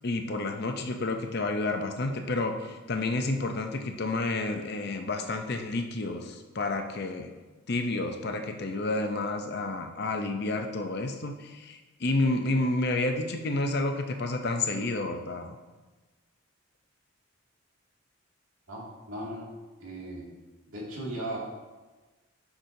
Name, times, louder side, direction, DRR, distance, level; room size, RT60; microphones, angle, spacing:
voice 1, 0.0-7.3 7.7-15.6, left 2 dB, 50° left, 5 dB, 0.6 m, -30 dB
voice 2, 18.7-19.5 19.8-20.2 20.7-21.4, right 1 dB, 80° right, -4 dB, 2.3 m, -37 dB
10.0 x 6.1 x 2.7 m, 1.2 s
head